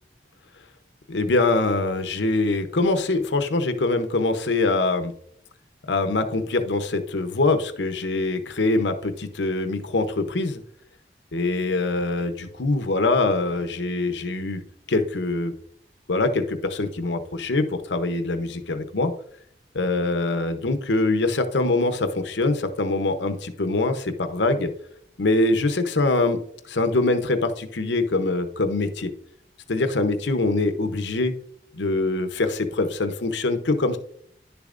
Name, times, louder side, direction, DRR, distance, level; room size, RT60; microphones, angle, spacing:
voice 1, 1.1-5.1 5.9-10.6 11.3-14.6 14.9-15.5 16.1-19.1 19.7-24.7 25.2-26.4 26.7-29.1 29.7-31.3 31.7-34.0, left 2 dB, 85° left, 8 dB, 0.8 m, -23 dB
10.5 x 6.9 x 2.5 m, 0.66 s
head